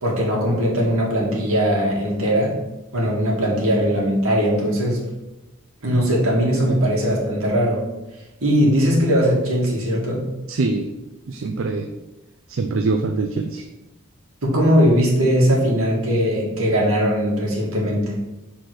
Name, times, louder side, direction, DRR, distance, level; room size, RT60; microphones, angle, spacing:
voice 1, 0.0-2.5 2.9-5.0 5.8-7.8 8.4-10.2 14.4-18.1, equal, 85° right, -3 dB, 1.9 m, -19 dB
voice 2, 10.5-10.9 11.3-11.9 12.5-13.6, right 3 dB, 65° right, 6 dB, 0.4 m, -23 dB
6.1 x 4.1 x 4.8 m, 1.0 s
head